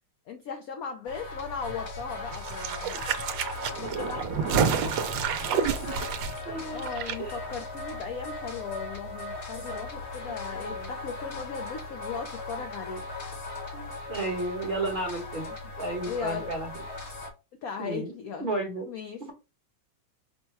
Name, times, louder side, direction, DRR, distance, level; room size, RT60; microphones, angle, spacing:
voice 1, 0.3-3.0 3.8-5.2 6.7-13.0 16.0-16.5 17.6-18.5 18.9-19.2, left 6 dB, 70° left, 0.8 m, -37 dB
sound 1, 1.1-17.3, left 3 dB, 45° left, 1.1 m, -38 dB
sound 2, 1.7-1.8 2.0-2.1 2.3-2.5 3.0-3.2 3.6-3.9 4.3-4.4 4.6-4.7 4.9-5.2 5.6-5.9 6.3-6.5, right 4 dB, 15° right, 0.6 m, -47 dB
sound 3, 2.3-7.2 7.4-7.5, right 7 dB, 80° right, 1.3 m, -29 dB
voice 2, 6.4-6.8 7.2-7.4 10.3-10.9 13.7-16.7 17.8-18.1 18.4-18.9, right 2 dB, 30° right, 1.1 m, -33 dB
5.5 x 2.2 x 4.4 m
omnidirectional pair, 2.0 m